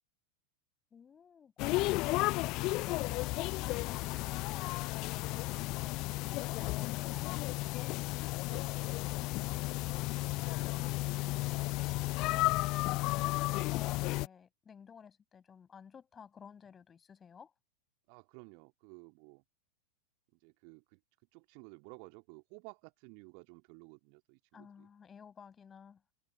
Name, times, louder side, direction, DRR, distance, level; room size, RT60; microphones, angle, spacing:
voice 1, 0.9-2.4 2.7-4.7 5.1-7.9 9.9-11.7 12.3-17.5 24.5-26.0, left 7 dB, 20° left, 5.8 m, -54 dB
sound 1, 1.6-14.3, left 22 dB, 40° left, 0.4 m, -33 dB
voice 2, 18.1-19.4 20.3-21.0 21.3-24.9, right 40 dB or more, 45° right, 1.9 m, -54 dB
figure-of-eight pair, 90°, 0 cm